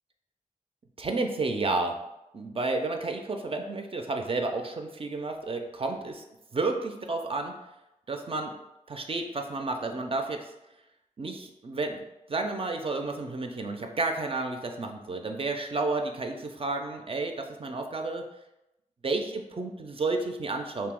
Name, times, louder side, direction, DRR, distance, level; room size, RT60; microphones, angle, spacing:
voice 1, 1.0-2.0 2.3-6.2 6.5-7.5 8.1-8.5 8.9-10.5 11.2-18.2 19.0-20.9, right 3 dB, 40° right, 4 dB, 0.4 m, -31 dB
2.7 x 2.0 x 3.5 m, 0.91 s
cardioid pair, 50°, 14 cm